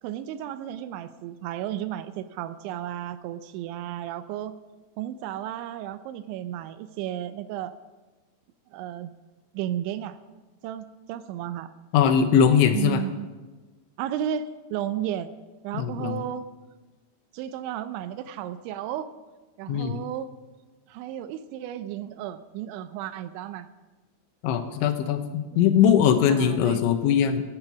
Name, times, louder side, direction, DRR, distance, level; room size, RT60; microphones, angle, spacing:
voice 1, 0.0-4.5 5.0-7.7 8.7-9.1 9.5-10.2 10.6-11.7 12.7-13.3 14.0-15.3 15.6-16.5 17.3-19.1 19.6-20.3 20.9-23.7 25.5-25.6 26.3-26.8, right 11 dB, 80° right, 12 dB, 2.8 m, -33 dB
voice 2, 11.9-13.0 15.7-16.2 19.7-20.0 24.4-27.4, left 8 dB, 80° left, 8 dB, 3.2 m, -21 dB
15.5 x 11.0 x 6.0 m, 1.2 s
omnidirectional pair, 5.5 m